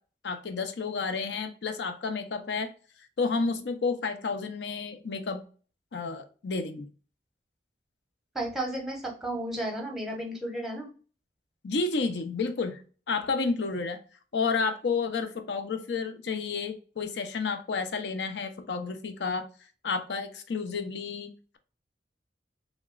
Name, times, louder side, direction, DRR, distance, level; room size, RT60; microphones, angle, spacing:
voice 1, 0.2-2.7 3.2-5.4 5.9-6.9 11.6-12.8 13.1-14.0 14.3-19.4 19.8-21.3, left 4 dB, 80° left, 8 dB, 0.5 m, -31 dB
voice 2, 8.3-10.9, right 1 dB, ahead, 1 dB, 0.7 m, -33 dB
3.1 x 2.9 x 2.4 m, 0.39 s
head